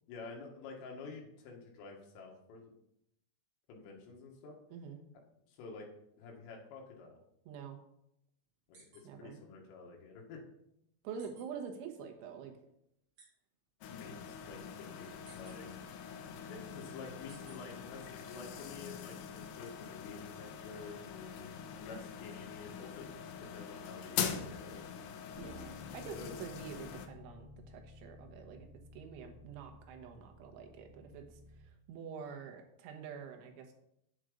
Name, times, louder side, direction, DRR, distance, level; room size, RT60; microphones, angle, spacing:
voice 1, 0.1-2.7 3.7-4.6 5.5-5.9 6.2-7.2 8.9-10.4 13.9-15.8 16.5-21.5 21.8-24.8 26.2-26.3, left 4 dB, 65° left, 0 dB, 3.7 m, -49 dB
voice 2, 7.5-7.8 9.0-9.4 11.1-12.6 25.4-33.7, right 6 dB, 75° right, 3 dB, 3.5 m, -47 dB
sound 1, 8.7-9.0 9.4-9.5 11.2-11.4 13.2-13.3 15.2-15.6 17.3-17.6, right 3 dB, 40° right, 3.2 m, -57 dB
sound 2, 13.8-27.1, left 8 dB, 90° left, 2.3 m, -43 dB
Bass guitar, 25.3-31.6, left 2 dB, 10° right, 4.0 m, -55 dB
8.1 x 7.7 x 5.1 m, 0.78 s
omnidirectional pair, 5.7 m